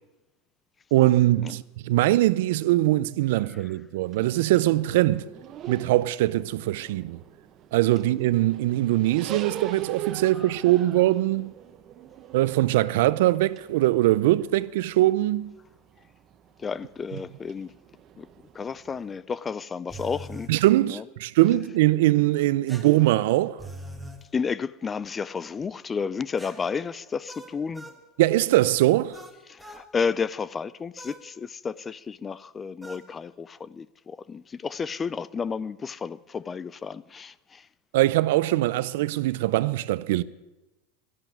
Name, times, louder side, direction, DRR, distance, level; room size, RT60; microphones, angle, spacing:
voice 1, 0.9-5.3 5.7-7.2 7.7-11.5 12.3-15.5 20.5-23.6 28.2-29.2 37.9-40.2, right 16 dB, 75° right, 0.5 m, -22 dB
sound 1, 4.0-19.2, right 10 dB, 40° right, 1.1 m, -43 dB
voice 2, 16.6-17.7 18.2-18.3 18.5-20.5 20.8-21.0 24.3-27.9 29.5-37.7, left 5 dB, 20° left, 0.4 m, -32 dB
sound 2, 19.9-20.5 22.7-24.2 26.4-28.0 29.1-29.9 31.0-31.3 32.8-33.1, right 1 dB, ahead, 1.6 m, -43 dB
12.5 x 11.0 x 9.3 m
supercardioid pair, 130°, 0 cm